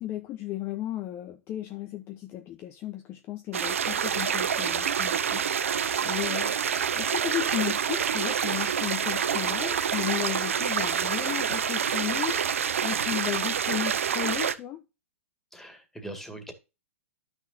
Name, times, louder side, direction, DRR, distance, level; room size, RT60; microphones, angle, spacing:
voice 1, 0.0-5.4 6.0-14.8, left 13 dB, 30° left, 0.9 m, -34 dB
sound 1, 3.5-14.6, right 7 dB, 70° right, 0.9 m, -27 dB
voice 2, 15.5-16.5, right 1 dB, 5° left, 2.1 m, -41 dB
12.5 x 6.2 x 2.7 m
hypercardioid pair, 115°, 7 cm